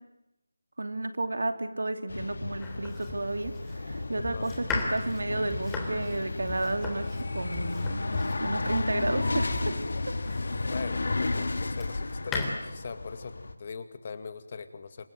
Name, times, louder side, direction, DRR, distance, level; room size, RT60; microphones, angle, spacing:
voice 1, 0.8-9.8 10.0-10.1, right 2 dB, 65° right, 8 dB, 2.9 m, -32 dB
sound 1, 2.1-13.5, left 2 dB, 60° left, 2.3 m, -33 dB
Domestic sounds home sounds, 2.6-10.8 11.3-12.5, left 3 dB, 10° left, 3.4 m, -38 dB
voice 2, 4.2-4.6 10.7-15.1, left 5 dB, 35° left, 10 dB, 2.1 m, -40 dB
27.5 x 23.0 x 9.3 m, 0.87 s
figure-of-eight pair, 160°, 0 cm